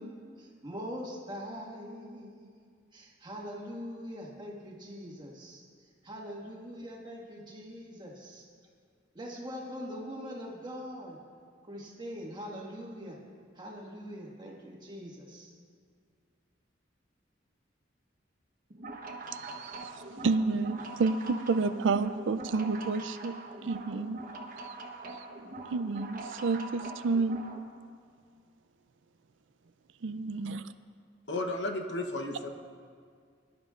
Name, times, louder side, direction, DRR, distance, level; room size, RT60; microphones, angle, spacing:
voice 1, 0.0-2.6 2.9-5.6 6.0-8.4 9.1-11.2 11.6-13.2 13.5-15.5, equal, 25° right, -3 dB, 1.7 m, -42 dB
sound 1, 18.7-27.6, right 2 dB, 45° right, 1.0 m, -43 dB
voice 2, 19.3-23.3 23.6-24.2 24.6-24.7 25.1-25.2 25.7-27.4 30.0-30.7, right 4 dB, 85° right, 11 dB, 0.4 m, -30 dB
voice 3, 31.3-32.5, left 2 dB, 70° left, 4 dB, 0.9 m, -33 dB
22.0 x 11.0 x 2.5 m, 2.1 s
head